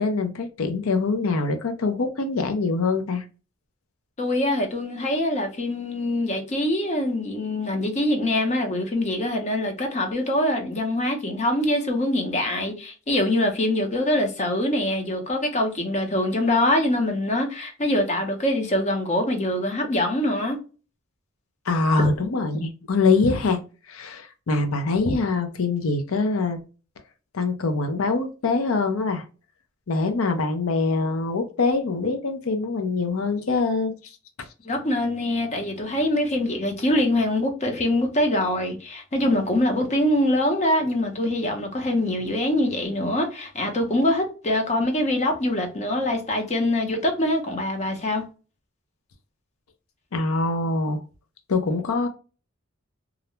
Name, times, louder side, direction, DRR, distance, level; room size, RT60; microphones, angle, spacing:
voice 1, 0.0-3.2 21.7-23.6 23.9-26.6 27.3-29.2 29.9-33.9 34.4-34.5 50.1-51.0 51.5-52.1, left 3 dB, 85° left, 0.5 m, -24 dB
voice 2, 4.2-20.6 22.0-22.1 34.6-48.2, left 1 dB, 35° left, 0.7 m, -24 dB
2.5 x 2.1 x 2.9 m
head